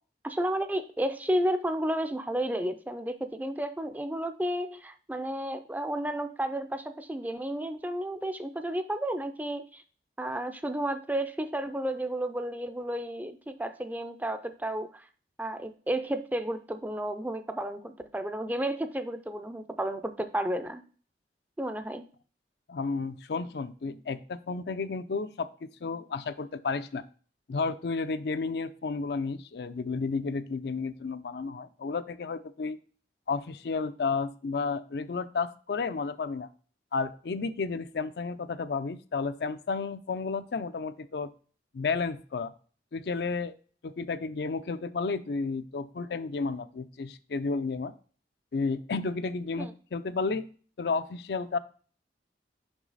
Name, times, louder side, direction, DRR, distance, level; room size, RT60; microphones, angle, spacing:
voice 1, 0.2-9.8 10.2-15.0 15.4-20.8 21.6-22.0 49.6-49.7, right 1 dB, 10° right, 9 dB, 0.4 m, -32 dB
voice 2, 22.7-27.0 27.5-32.8 33.3-36.5 36.9-41.3 41.7-42.5 42.9-43.5 43.8-47.9 48.5-50.5 50.8-51.6, left 4 dB, 65° left, 12 dB, 0.4 m, -32 dB
6.1 x 5.6 x 3.9 m, 0.42 s
head